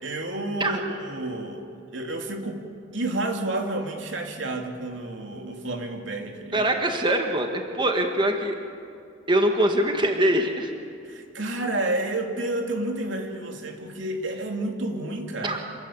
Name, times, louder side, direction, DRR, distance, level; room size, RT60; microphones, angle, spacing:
voice 1, 0.0-1.7 1.9-2.6 2.9-6.7 11.0-15.6, right 2 dB, 80° right, 3 dB, 3.0 m, -30 dB
voice 2, 6.5-8.6 9.3-10.7 15.4-15.6, right 1 dB, 25° right, 4 dB, 1.8 m, -23 dB
27.0 x 19.0 x 8.6 m, 2.5 s
head